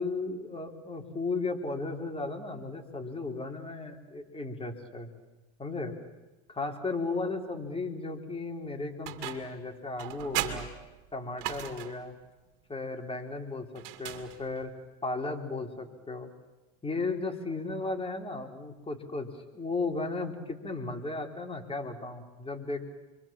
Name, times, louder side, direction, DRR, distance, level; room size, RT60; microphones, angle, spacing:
voice 1, 0.0-5.1 5.6-6.0 6.5-10.7 11.1-12.2 12.7-14.7 15.0-16.3 16.8-22.8, left 3 dB, 15° left, 3 dB, 3.6 m, -35 dB
sound 1, 9.0-9.6 10.0-12.1 13.7-14.7, right 13 dB, 70° right, 2.5 m, -37 dB
29.0 x 23.5 x 7.4 m, 1.1 s
supercardioid pair, 105°, 33 cm